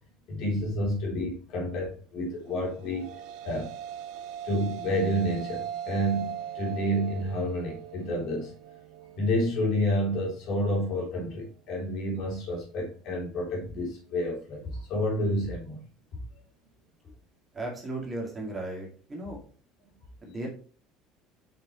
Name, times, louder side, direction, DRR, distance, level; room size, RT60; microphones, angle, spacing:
voice 1, 0.3-3.1 3.4-3.7 4.4-8.5 9.1-15.8 16.3-16.4, equal, 50° left, -1 dB, 3.4 m, -29 dB
sound 1, 2.6-11.2, right 10 dB, 70° right, 1.1 m, -40 dB
voice 2, 17.5-19.4 20.2-20.5, right 2 dB, 15° right, -1 dB, 2.1 m, -35 dB
6.8 x 6.2 x 3.1 m, 0.42 s
cardioid pair, 160°, 0 cm